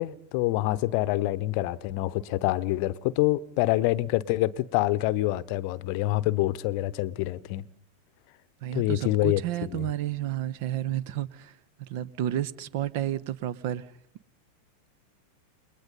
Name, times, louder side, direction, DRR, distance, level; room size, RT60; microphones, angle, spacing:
voice 1, 0.0-7.6 8.7-9.9, left 17 dB, 45° left, 0.9 m, -26 dB
voice 2, 8.6-11.5 11.8-13.9, right 12 dB, 50° right, 1.0 m, -31 dB
29.5 x 21.5 x 5.4 m
figure-of-eight pair, 90°, 0 cm